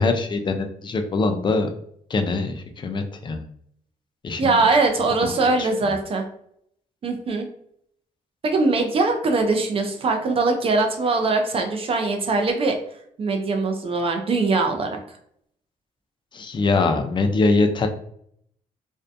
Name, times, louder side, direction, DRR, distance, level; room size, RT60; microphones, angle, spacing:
voice 1, 0.0-1.7 2.1-3.4 4.2-4.6 5.2-5.7 16.3-17.9, left 3 dB, 35° left, 6 dB, 0.4 m, -23 dB
voice 2, 4.4-6.2 7.0-7.5 8.4-12.7 13.2-15.0, right 3 dB, 45° right, 4 dB, 0.4 m, -21 dB
2.6 x 2.1 x 2.5 m, 0.68 s
cardioid pair, 95°, 14 cm